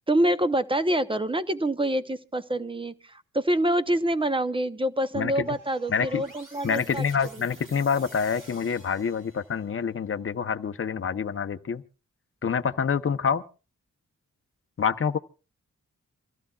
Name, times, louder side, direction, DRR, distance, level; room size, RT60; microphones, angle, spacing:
voice 1, 0.1-7.0 7.3-7.4, right 1 dB, 15° right, 0.7 m, -26 dB
voice 2, 5.1-5.6 5.9-6.2 6.6-11.8 12.4-13.4 14.8-15.2, left 6 dB, 40° left, 0.7 m, -27 dB
sound 1, 5.4-9.7, right 2 dB, 75° right, 5.9 m, -50 dB
26.5 x 15.0 x 2.3 m
wide cardioid pair, 150°, 32 cm